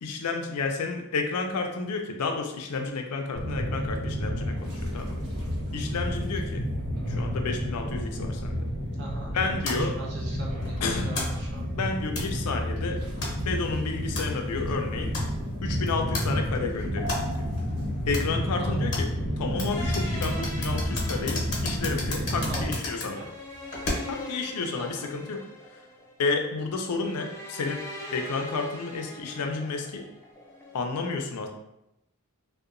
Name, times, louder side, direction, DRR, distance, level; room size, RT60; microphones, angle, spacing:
voice 1, 0.0-5.2 5.7-6.6 7.1-8.7 9.3-10.0 10.8-11.2 11.7-13.0 13.5-15.1 15.6-17.5 18.1-19.1 19.4-23.2 24.1-25.4 26.2-27.8 28.1-30.0 30.7-31.5, left 4 dB, 85° left, 4 dB, 0.4 m, -31 dB
sound 1, 3.3-22.8, equal, 80° right, 0.9 m, -30 dB
voice 2, 9.0-11.6 18.6-18.9 22.5-23.3 24.8-25.1, right 2 dB, 50° right, -2 dB, 0.5 m, -42 dB
sound 2, 9.7-24.3, left 2 dB, 50° left, 0.8 m, -37 dB
sound 3, 19.7-30.8, equal, 10° left, 0.3 m, -42 dB
2.8 x 2.1 x 2.4 m, 0.87 s
head